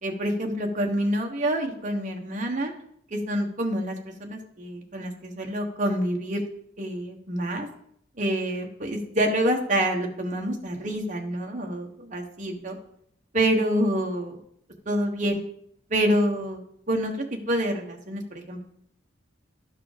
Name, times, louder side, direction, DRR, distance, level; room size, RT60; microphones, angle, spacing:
voice 1, 0.0-2.7 3.1-6.4 6.8-7.7 8.2-12.7 13.3-14.4 14.9-15.4 15.9-18.6, right 1 dB, 40° right, 2 dB, 1.3 m, -27 dB
12.0 x 4.9 x 5.0 m, 0.70 s
head